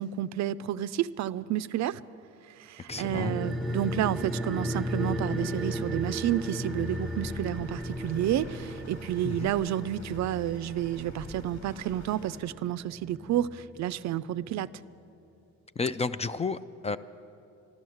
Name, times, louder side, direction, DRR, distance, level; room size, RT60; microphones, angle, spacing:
voice 1, 0.0-2.0 2.7-14.7, right 12 dB, 65° right, 15 dB, 0.4 m, -30 dB
voice 2, 2.9-3.4 9.2-9.5 15.8-17.0, left 4 dB, 20° left, 14 dB, 0.3 m, -32 dB
sound 1, 2.9-13.8 14.0-14.1, equal, ahead, 0.7 m, -35 dB
sound 2, 3.4-12.4, left 1 dB, 65° left, 2.9 m, -50 dB
13.0 x 12.0 x 7.8 m, 2.7 s
cardioid pair, 90°, 30 cm